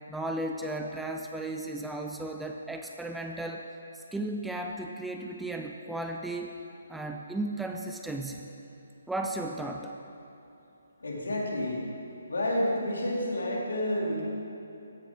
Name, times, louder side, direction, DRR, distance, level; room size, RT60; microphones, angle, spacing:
voice 1, 0.1-3.6 3.9-6.5 6.9-8.5 9.1-9.9, right 1 dB, 5° right, 2 dB, 0.4 m, -35 dB
voice 2, 11.0-11.8 12.3-14.2, left 1 dB, 65° left, -3 dB, 2.6 m, -29 dB
15.0 x 10.0 x 3.6 m, 2.8 s
figure-of-eight pair, 140°, 0 cm